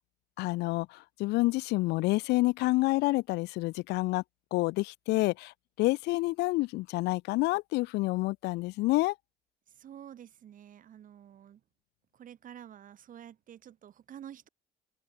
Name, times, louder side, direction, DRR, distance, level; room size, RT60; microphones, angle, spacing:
voice 1, 0.4-4.2 4.5-9.1, left 21 dB, 85° left, 0.6 m, -28 dB
voice 2, 9.7-11.6 12.1-14.5, right 10 dB, 55° right, 2.5 m, -49 dB
cardioid pair, 110°, 17 cm